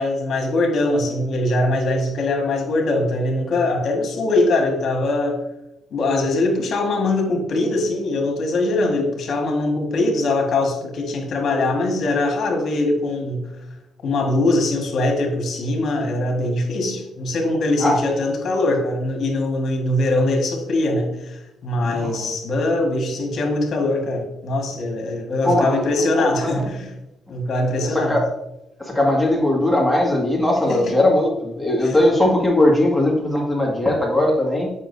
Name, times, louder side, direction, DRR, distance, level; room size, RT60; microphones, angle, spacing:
voice 1, 0.0-5.4 5.9-13.5 14.0-26.9 27.3-28.2 30.7-30.8 31.8-32.0, left 2 dB, 55° left, 3 dB, 1.6 m, -22 dB
voice 2, 21.8-22.3 25.4-26.7 27.8-28.3 28.8-34.7, left 1 dB, ahead, -3 dB, 1.9 m, -19 dB
7.4 x 5.7 x 2.7 m, 0.89 s
cardioid pair, 90°, 0 cm